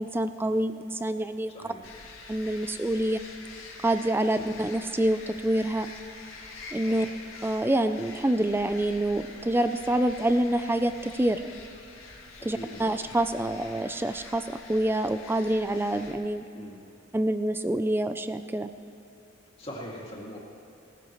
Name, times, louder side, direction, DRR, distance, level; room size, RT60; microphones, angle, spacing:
voice 1, 0.0-1.5 2.3-3.2 3.8-5.9 6.7-7.1 7.4-11.4 12.4-16.4 17.1-18.7, right 1 dB, 10° right, 10 dB, 0.4 m, -26 dB
voice 2, 1.5-1.8 4.3-4.5 6.8-7.1 12.4-12.9 16.5-16.8 19.6-20.4, equal, 25° left, -3 dB, 2.3 m, -42 dB
sound 1, 1.8-16.1, left 3 dB, 80° left, 2.1 m, -46 dB
18.0 x 15.0 x 3.1 m, 2.9 s
head